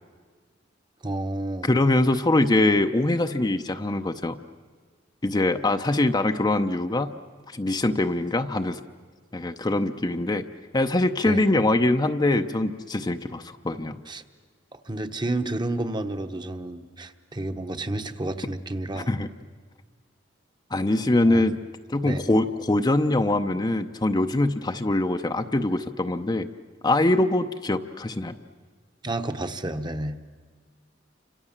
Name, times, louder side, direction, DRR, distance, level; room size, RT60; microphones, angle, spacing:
voice 1, 1.0-1.7 11.2-11.4 14.1-14.2 14.9-19.1 21.2-21.4 22.0-22.2 29.0-30.2, right 2 dB, 25° right, 7 dB, 1.1 m, -30 dB
voice 2, 1.6-4.4 5.2-7.2 7.5-8.8 9.3-10.4 10.7-14.0 18.9-19.3 20.7-21.6 21.9-26.5 26.8-28.4, left 2 dB, 20° left, 7 dB, 0.7 m, -23 dB
29.5 x 26.5 x 7.3 m, 1.5 s
head